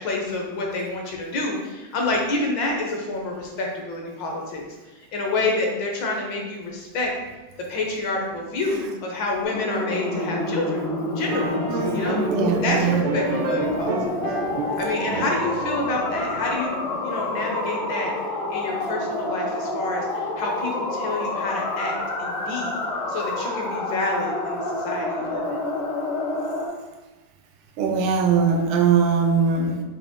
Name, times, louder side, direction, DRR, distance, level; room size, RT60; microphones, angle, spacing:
voice 1, 0.0-4.6 5.1-7.1 7.7-10.8 11.1-12.2 12.6-14.2 14.8-18.1 18.5-22.8 23.1-25.6, left 2 dB, 65° left, 0 dB, 1.4 m, -28 dB
sound 1, 9.4-26.7, left 2 dB, 90° left, 1.7 m, -28 dB
sound 2, 11.3-16.6, right 3 dB, 75° right, 1.1 m, -31 dB
voice 2, 11.7-13.0 15.2-15.3 27.8-29.8, right 6 dB, 90° right, 3 dB, 1.5 m, -21 dB
5.2 x 2.9 x 3.5 m, 1.2 s
omnidirectional pair, 2.3 m